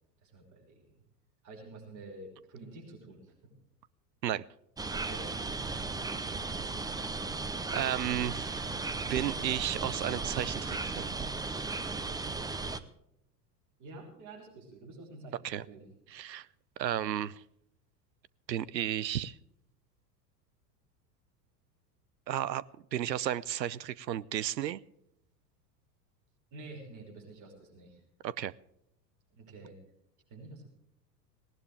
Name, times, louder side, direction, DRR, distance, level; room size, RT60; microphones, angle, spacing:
voice 1, 0.2-0.8 1.4-3.5 4.9-5.3 13.8-15.8 26.5-28.0 29.4-29.8 30.3-30.7, right 2 dB, 35° right, 0 dB, 5.9 m, -49 dB
sound 1, 4.8-12.8, right 3 dB, 10° right, 0.7 m, -36 dB
voice 2, 7.7-8.8 9.1-11.1 15.4-15.7 16.1-16.5 16.8-17.4 18.5-19.4 22.3-22.6 22.9-24.8 28.2-28.5, right 11 dB, 85° right, 23 dB, 0.7 m, -33 dB
18.5 x 18.0 x 3.4 m, 0.77 s
hypercardioid pair, 90°, 50 cm